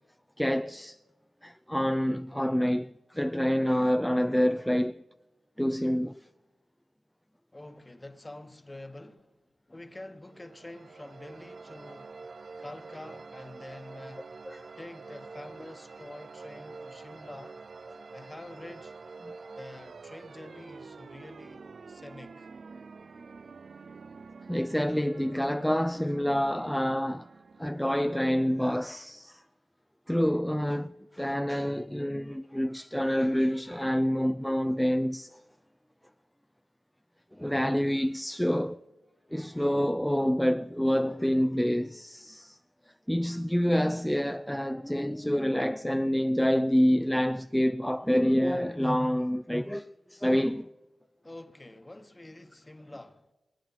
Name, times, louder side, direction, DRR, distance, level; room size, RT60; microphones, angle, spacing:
voice 1, 0.4-1.0 1.4-5.0 5.6-6.2 14.5-14.6 19.3-19.4 24.5-27.3 27.6-29.4 30.1-35.4 37.3-38.8 39.3-42.6 43.1-50.7, equal, 5° left, 0.4 m, -27 dB
voice 2, 7.5-9.4 9.7-12.2 12.6-14.3 14.8-17.6 18.1-19.0 19.6-22.5 51.2-53.3, left 1 dB, 25° left, 1.2 m, -46 dB
sound 1, 10.3-28.9, right 4 dB, 60° right, 0.4 m, -47 dB
21.0 x 9.2 x 5.7 m
cardioid pair, 45°, 0 cm